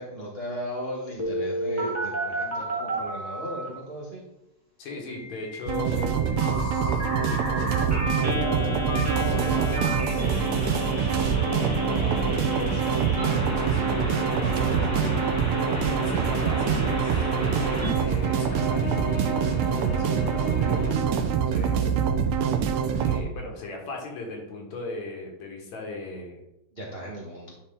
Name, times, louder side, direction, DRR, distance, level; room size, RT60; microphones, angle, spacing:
voice 1, 0.0-4.2 26.7-27.6, equal, 60° right, -4 dB, 0.6 m, -36 dB
Telephone, 1.2-3.7 5.1-17.9, equal, 10° right, 1.2 m, -32 dB
voice 2, 4.8-6.1 6.4-8.9 9.3-10.6 11.2-12.8 13.4-14.9 15.7-17.3 17.9-21.9 23.0-26.4, left 2 dB, 75° left, 0 dB, 2.8 m, -39 dB
sound 1, 5.7-23.2, right 7 dB, 85° right, 2.1 m, -25 dB
sound 2, 8.5-21.0, left 2 dB, 50° left, 1.9 m, -36 dB
10.5 x 4.3 x 3.7 m, 0.89 s
omnidirectional pair, 3.3 m